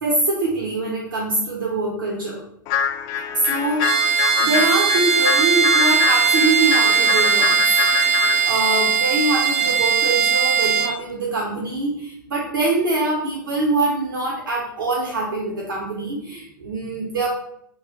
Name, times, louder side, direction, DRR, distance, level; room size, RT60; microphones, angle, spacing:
voice 1, 0.0-2.4 3.4-4.0 4.4-7.6 8.4-17.3, right 2 dB, 70° right, -3 dB, 1.0 m, -24 dB
Morsing theka, 2.7-8.5, left 8 dB, 35° left, 0.3 m, -25 dB
Bowed string instrument, 3.8-11.0, right 6 dB, 45° right, 0.5 m, -19 dB
3.7 x 2.6 x 4.1 m, 0.71 s
figure-of-eight pair, 100°, 11 cm